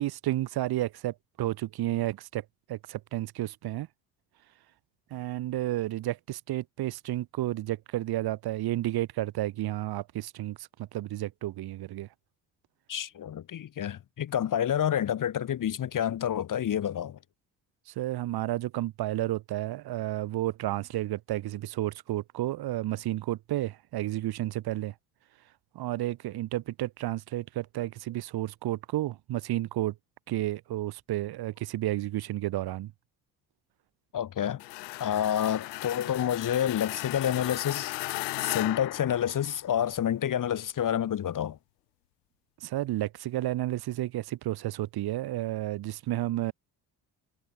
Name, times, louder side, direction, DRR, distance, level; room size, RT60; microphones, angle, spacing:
voice 1, 0.0-2.4 2.7-3.9 5.1-12.1 18.0-24.9 25.7-29.9 30.3-32.9 42.6-46.5, right 15 dB, 50° right, 0.8 m, -31 dB
voice 2, 12.9-17.2 34.1-34.6 35.0-37.9 38.4-41.6, left 10 dB, 40° left, 1.0 m, -28 dB
sound 1, 34.6-39.8, left 22 dB, 85° left, 0.9 m, -36 dB
hypercardioid pair, 45°, 49 cm